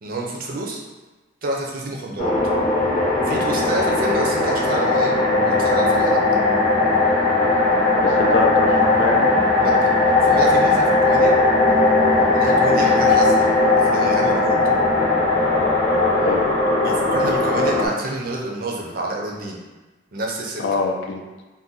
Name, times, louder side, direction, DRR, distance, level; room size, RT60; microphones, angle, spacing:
voice 1, 0.0-0.8 1.4-2.3 3.2-5.1 5.4-6.2 9.6-9.9 10.2-11.4 12.3-14.6 16.8-19.6 20.1-20.8, right 2 dB, 50° right, -1 dB, 0.5 m, -28 dB
sound 1, 2.2-17.9, left 2 dB, 40° left, 0.7 m, -18 dB
voice 2, 8.0-9.3 16.1-16.4 20.6-21.2, left 4 dB, 70° left, 2 dB, 0.4 m, -24 dB
2.6 x 2.2 x 3.7 m, 1.2 s
head